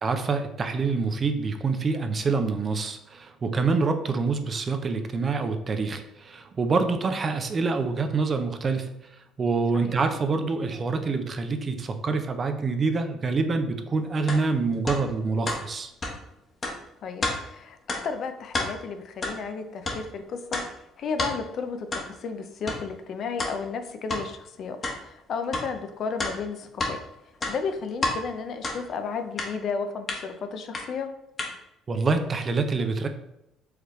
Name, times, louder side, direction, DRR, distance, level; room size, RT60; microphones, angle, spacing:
voice 1, 0.0-15.9 31.9-33.1, right 4 dB, 40° right, 7 dB, 0.6 m, -26 dB
sound 1, 14.3-14.4 14.9-15.0 15.5-15.6 16.0-16.1 16.6-16.8 17.2-17.4 17.9-18.0 18.4-18.7 19.2-19.4 19.8-20.0 20.5-20.7 21.2-21.3 21.9-22.1 22.7-22.8 23.4-23.5 24.1-24.2 24.8-25.0 25.5-25.7 26.2-27.0 27.3-28.2 28.6-28.8 29.4-29.5 30.1-30.2 30.7-30.8 31.4-31.5, left 2 dB, 35° left, 1.1 m, -29 dB
voice 2, 17.0-17.8 18.0-20.6 21.0-27.0 27.5-31.1, left 5 dB, 60° left, 8 dB, 0.5 m, -33 dB
4.8 x 3.3 x 3.1 m, 0.84 s
supercardioid pair, 75°, 0 cm